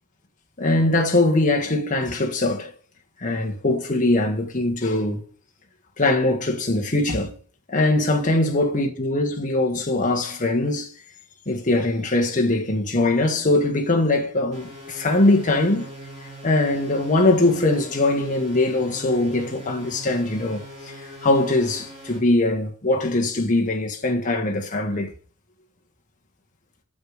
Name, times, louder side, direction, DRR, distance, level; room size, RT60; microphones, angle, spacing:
voice 1, 0.6-2.7 3.2-5.2 6.0-7.3 7.7-10.9 11.5-15.8 16.4-20.9 21.2-25.1, left 2 dB, 35° left, 1.5 m, -21 dB
sound 1, 14.5-22.2, equal, 30° right, 4.7 m, -41 dB
8.1 x 6.1 x 5.0 m
head